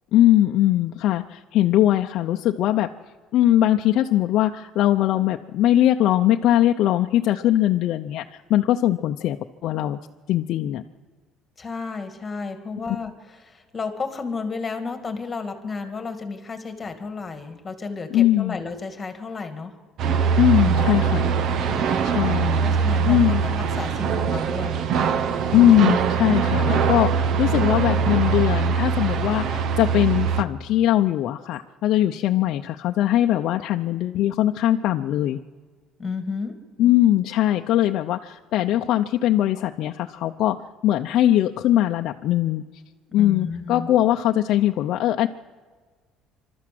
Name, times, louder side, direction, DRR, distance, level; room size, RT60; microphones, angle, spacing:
voice 1, 0.1-2.9 3.3-9.4 9.6-10.0 10.3-10.8 18.1-18.6 20.3-21.3 22.0-22.7 23.0-23.4 25.5-35.4 36.8-42.6 43.1-45.3, left 13 dB, 60° left, 4 dB, 0.7 m, -20 dB
voice 2, 11.6-19.7 21.7-22.3 22.6-24.8 36.0-36.6 43.1-43.9, left 4 dB, 20° left, 7 dB, 2.2 m, -32 dB
sound 1, 20.0-30.4, right 6 dB, 55° right, 0.9 m, -22 dB
27.0 x 13.0 x 7.7 m, 1.5 s
cardioid pair, 135°, 0 cm